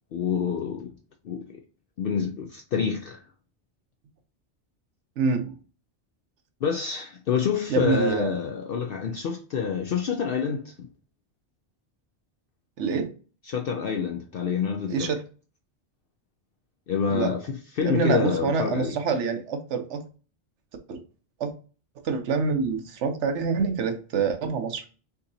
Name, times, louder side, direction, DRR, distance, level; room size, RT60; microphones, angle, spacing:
voice 1, 0.1-0.9 1.2-1.6 2.0-3.2 6.6-10.9 13.4-15.1 16.9-19.0, left 6 dB, 60° left, 0.7 m, -27 dB
voice 2, 5.2-5.6 7.7-8.3 12.8-13.1 14.9-15.2 17.1-17.3 17.8-20.0 20.9-21.0 21.4-21.5 22.0-24.8, right 5 dB, 80° right, 1.1 m, -26 dB
6.2 x 2.8 x 2.7 m
omnidirectional pair, 1.2 m